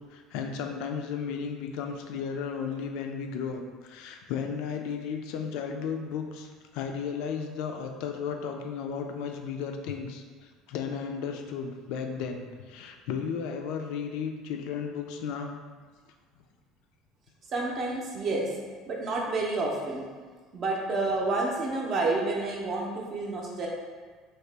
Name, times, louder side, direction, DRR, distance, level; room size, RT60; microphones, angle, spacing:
voice 1, 0.1-10.2 10.7-15.5, left 6 dB, 70° left, 4 dB, 0.3 m, -34 dB
voice 2, 17.5-18.5 18.9-20.0 20.5-23.7, right 3 dB, 35° right, -2 dB, 0.6 m, -29 dB
2.9 x 2.8 x 3.3 m, 1.5 s
cardioid pair, 155°, 0 cm